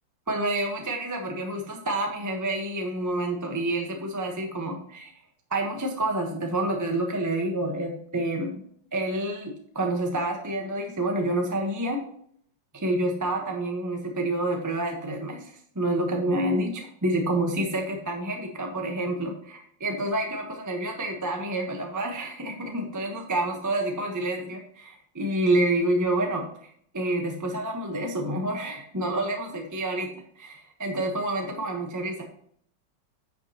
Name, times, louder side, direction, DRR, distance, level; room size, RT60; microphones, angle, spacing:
voice 1, 0.3-5.1 5.5-8.5 8.9-12.0 12.7-26.4 26.9-32.2, right 1 dB, 10° right, 2 dB, 0.9 m, -28 dB
10.0 x 6.3 x 3.0 m, 0.62 s
omnidirectional pair, 2.1 m